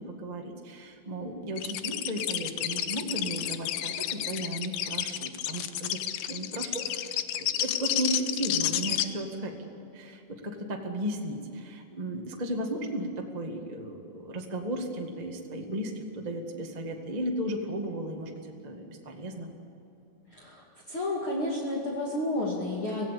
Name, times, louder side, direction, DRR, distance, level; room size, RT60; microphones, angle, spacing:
voice 1, 0.0-6.0 6.3-19.5, right 1 dB, 20° right, 1 dB, 1.0 m, -35 dB
sound 1, 1.6-9.0, left 12 dB, 75° left, 2.5 m, -31 dB
voice 2, 20.3-23.1, left 1 dB, 40° left, -3 dB, 3.0 m, -31 dB
25.5 x 16.5 x 8.5 m, 2.9 s
omnidirectional pair, 4.2 m